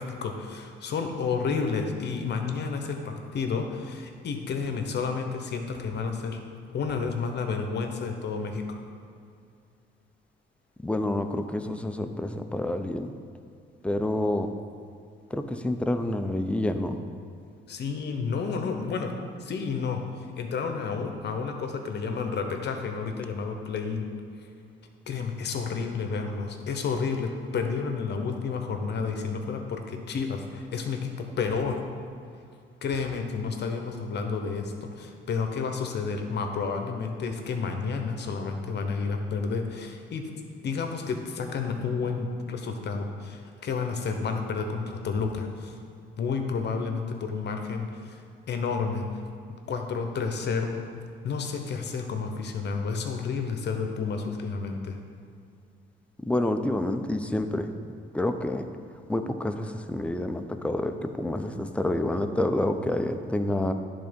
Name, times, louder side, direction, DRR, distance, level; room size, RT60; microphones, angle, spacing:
voice 1, 0.0-6.4 6.7-8.6 17.7-19.1 19.4-20.0 20.4-24.1 25.1-31.8 32.8-40.3 40.6-45.8 46.2-49.2 49.7-50.8 51.2-55.0, left 5 dB, 60° left, 4 dB, 0.9 m, -30 dB
voice 2, 10.8-13.1 13.8-14.5 15.3-17.0 56.2-57.7 58.1-58.7 59.1-63.7, left 1 dB, 5° left, 7 dB, 0.5 m, -28 dB
10.5 x 3.9 x 5.2 m, 2.4 s
cardioid pair, 90°, 20 cm